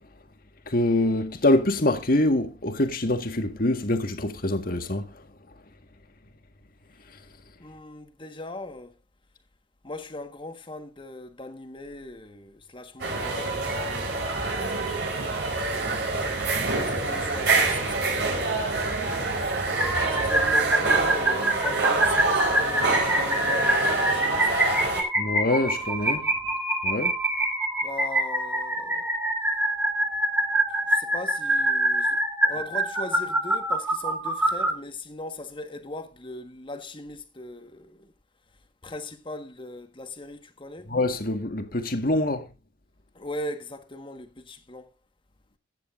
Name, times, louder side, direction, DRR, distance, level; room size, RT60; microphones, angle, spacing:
voice 1, 0.7-5.2 25.2-26.3 26.8-27.1 40.9-42.5, left 1 dB, 50° left, 1.8 m, -25 dB
voice 2, 7.6-8.9 9.8-14.3 16.0-18.6 20.1-24.5 27.8-29.1 30.7-38.1 38.8-40.9 43.1-44.9, left 2 dB, 30° left, 1.6 m, -39 dB
sound 1, 13.0-25.0, right 3 dB, 65° right, 4.5 m, -26 dB
sound 2, 19.7-34.7, right 1 dB, 10° right, 2.5 m, -25 dB
15.5 x 10.0 x 2.6 m
head